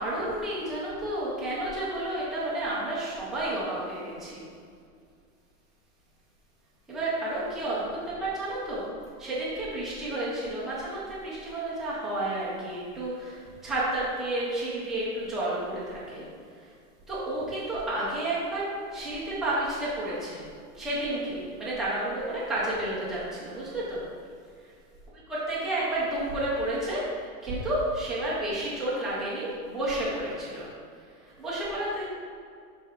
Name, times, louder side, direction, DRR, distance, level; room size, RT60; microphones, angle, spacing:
voice 1, 0.0-4.4 6.9-8.9 9.2-16.2 16.6-16.7 17.1-20.4 20.7-24.0 25.3-30.7 31.2-32.1, right 1 dB, ahead, -9 dB, 0.4 m, -31 dB
11.0 x 4.2 x 3.6 m, 2.2 s
supercardioid pair, 165°, 43 cm